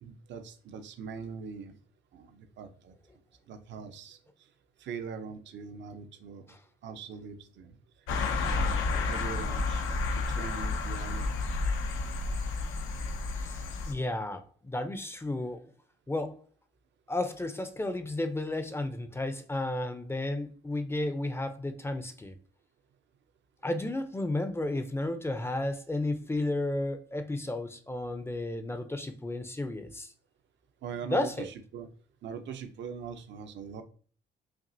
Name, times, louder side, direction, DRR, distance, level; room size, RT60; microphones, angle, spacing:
voice 1, 0.0-1.8 2.1-2.9 3.5-4.2 4.8-6.5 6.8-7.8 9.0-9.8 10.1-11.3 30.8-31.9 32.2-33.8, right 6 dB, 65° right, 0.6 m, -41 dB
sound 1, 8.1-13.9, left 3 dB, 90° left, 0.6 m, -31 dB
voice 2, 13.4-15.6 16.1-16.4 17.1-22.3 23.6-30.1 31.1-31.5, left 2 dB, 10° left, 0.5 m, -33 dB
5.9 x 2.4 x 2.6 m
cardioid pair, 90°, 20 cm